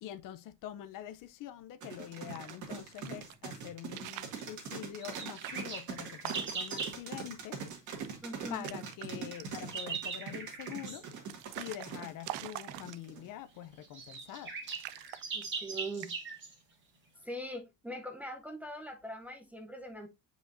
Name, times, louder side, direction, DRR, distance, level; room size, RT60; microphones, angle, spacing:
voice 1, 0.0-7.6 7.9-8.2 8.5-11.0 11.6-14.5, left 11 dB, 50° left, 0.5 m, -45 dB
sound 1, 1.8-13.3, right 6 dB, 45° right, 2.0 m, -42 dB
sound 2, 2.1-3.4 3.8-4.5 5.0-6.8 7.2-7.3 7.6-8.1 8.4-9.1 9.4-9.9 10.6-13.3 14.0-14.4 14.7-15.7 16.0-16.4, right 16 dB, 75° right, 0.6 m, -45 dB
sound 3, 5.0-7.0 9.1-11.1 12.9-13.0 13.5-13.6 13.8-16.5, right 5 dB, 25° right, 1.7 m, -40 dB
voice 2, 8.2-8.7 15.3-16.2 17.2-20.1, right 1 dB, 5° right, 0.6 m, -42 dB
8.0 x 5.1 x 2.5 m
cardioid pair, 175°, 43 cm